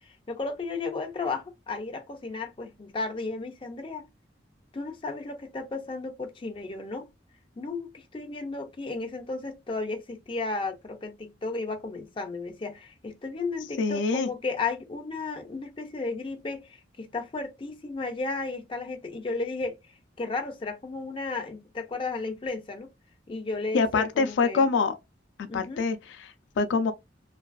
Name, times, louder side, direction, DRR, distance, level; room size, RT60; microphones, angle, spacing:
voice 1, 0.0-4.1 4.7-7.1 7.6-19.8 20.2-22.9 23.3-24.6 25.5-25.8, left 3 dB, 30° left, 0.4 m, -34 dB
voice 2, 13.8-14.3 23.7-25.0 25.4-26.9, left 4 dB, 90° left, 0.4 m, -25 dB
2.5 x 2.2 x 2.2 m
head